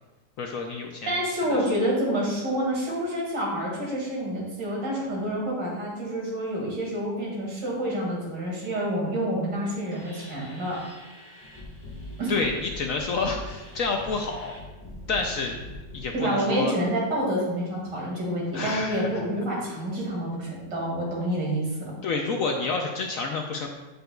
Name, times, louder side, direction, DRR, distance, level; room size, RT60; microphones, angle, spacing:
voice 1, 0.4-1.1 12.3-14.6 15.1-15.6 15.9-16.7 18.5-19.3 22.0-23.7, left 4 dB, 65° left, 2 dB, 0.8 m, -29 dB
voice 2, 1.1-10.8 12.2-12.3 16.1-21.9, right 1 dB, 80° right, -4 dB, 2.9 m, -28 dB
sound 1, 9.6-16.0, left 1 dB, 5° left, 1.5 m, -42 dB
8.2 x 7.9 x 2.3 m, 1.2 s
omnidirectional pair, 1.9 m